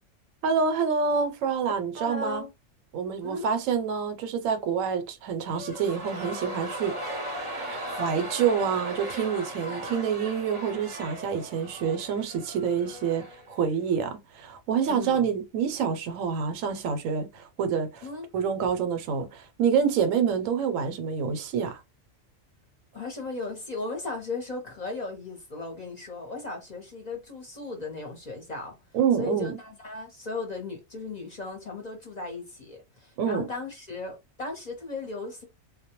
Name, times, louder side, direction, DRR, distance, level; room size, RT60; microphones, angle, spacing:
voice 1, 0.4-2.4 2.9-7.0 7.2-18.0 18.3-21.8 28.9-29.6 33.2-33.5, right 6 dB, 85° right, 1.0 m, -27 dB
voice 2, 2.0-2.5 3.2-3.5 14.9-15.4 18.0-18.3 22.9-28.8 29.2-35.4, left 3 dB, 45° left, 0.6 m, -36 dB
sound 1, 5.5-13.6 13.8-13.9, right 1 dB, 35° right, 0.5 m, -37 dB
2.2 x 2.1 x 2.9 m
omnidirectional pair, 1.3 m